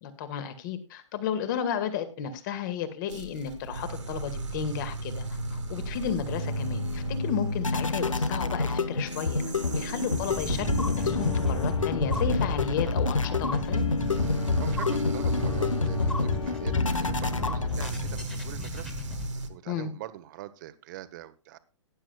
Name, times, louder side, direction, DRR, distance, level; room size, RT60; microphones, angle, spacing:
voice 1, 0.0-5.3 5.5-9.4 9.7-13.9 19.7-19.9, left 8 dB, 40° left, 10 dB, 1.9 m, -33 dB
sound 1, 3.1-19.5, right 1 dB, 70° right, 2.0 m, -36 dB
sound 2, 5.5-18.3, left 3 dB, 80° left, 1.0 m, -28 dB
voice 2, 9.7-10.0 14.6-18.9 19.5-21.6, right 14 dB, 40° right, 14 dB, 0.9 m, -43 dB
sound 3, 10.1-19.3, left 2 dB, 5° left, 2.0 m, -36 dB
18.0 x 10.0 x 2.3 m, 0.32 s
figure-of-eight pair, 120°, 16 cm